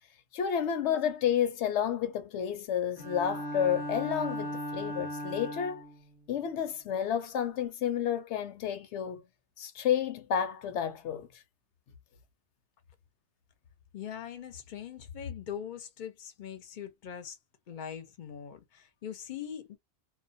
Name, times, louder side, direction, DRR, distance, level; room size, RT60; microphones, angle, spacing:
voice 1, 0.3-5.8 6.3-9.2 9.6-11.3, left 9 dB, 85° left, 0.9 m, -30 dB
Bowed string instrument, 3.0-6.0, equal, 30° right, 0.6 m, -37 dB
voice 2, 13.9-17.4 17.7-19.8, left 9 dB, 50° left, 0.7 m, -41 dB
2.2 x 2.1 x 2.6 m
omnidirectional pair, 1.2 m